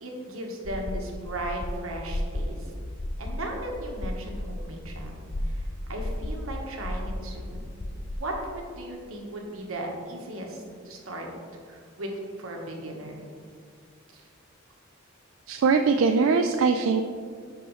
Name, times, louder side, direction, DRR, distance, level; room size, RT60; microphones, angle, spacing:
voice 1, 0.0-2.7 3.2-7.7 8.2-11.3 11.7-12.1 12.4-13.2 14.1-14.3, right 1 dB, 90° right, 0 dB, 1.2 m, -37 dB
sound 1, 0.7-8.2, left 1 dB, 25° left, 0.3 m, -34 dB
voice 2, 15.5-17.0, right 5 dB, 70° right, 6 dB, 0.3 m, -21 dB
11.0 x 4.5 x 3.1 m, 2.2 s
head